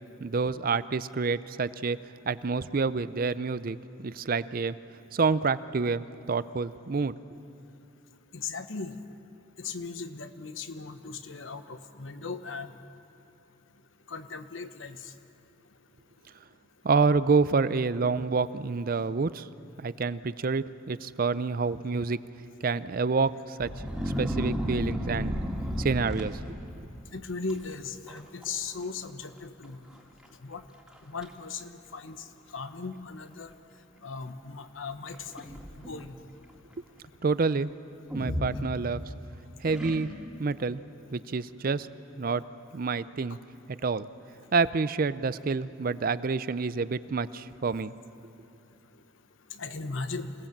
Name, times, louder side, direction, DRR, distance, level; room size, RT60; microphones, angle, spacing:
voice 1, 0.2-2.0 2.3-3.8 4.0-4.8 5.1-7.1 16.8-19.5 19.8-22.2 22.6-23.7 24.0-25.4 25.8-26.6 36.8-36.9 37.2-37.7 38.1-39.0 39.6-40.1 40.4-40.8 41.1-41.9 42.2-42.4 42.7-43.4 43.7-44.1 44.5-47.9, right 4 dB, 45° right, 15 dB, 0.5 m, -28 dB
voice 2, 8.3-8.9 9.6-12.7 14.1-15.0 27.1-29.8 30.4-30.6 31.1-32.2 32.5-33.5 34.0-36.1 49.6-50.3, left 4 dB, 85° left, 9 dB, 1.1 m, -38 dB
sound 1, 23.6-26.9 27.5-27.7 28.1-28.5 28.8-28.9 29.6-29.7 30.2-30.3 30.9-31.3 32.1-32.2 35.1-36.1 38.1-39.2 39.7-40.4, equal, 5° right, 2.1 m, -33 dB
26.5 x 18.0 x 7.4 m, 2.6 s
head